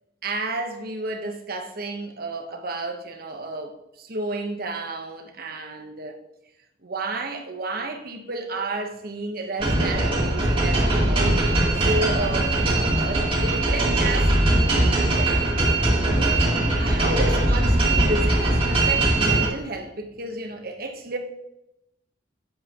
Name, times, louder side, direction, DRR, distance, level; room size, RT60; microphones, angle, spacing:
voice 1, 0.2-6.2 6.8-11.4 11.7-15.3 16.1-16.3 16.8-21.2, right 2 dB, 50° right, 1.1 m, -32 dB
sound 1, 9.6-19.5, right 1 dB, 30° right, 2.2 m, -21 dB
8.8 x 7.5 x 3.0 m
head